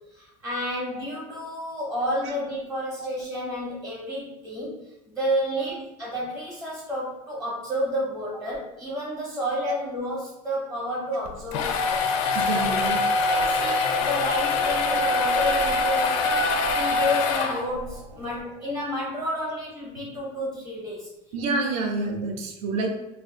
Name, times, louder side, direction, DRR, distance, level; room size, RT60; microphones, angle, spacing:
voice 1, 0.1-12.1 12.5-12.7 13.3-21.1, left 1 dB, ahead, -5 dB, 0.7 m, -30 dB
voice 2, 5.5-5.8 9.6-9.7 12.3-13.0 21.3-22.9, right 3 dB, 45° right, 3 dB, 0.5 m, -28 dB
sound 1, 11.3-17.9, left 3 dB, 85° left, 0.5 m, -24 dB
sound 2, 11.4-19.4, right 4 dB, 85° right, 0.7 m, -37 dB
2.5 x 2.4 x 3.5 m, 0.92 s
cardioid pair, 180°, 16 cm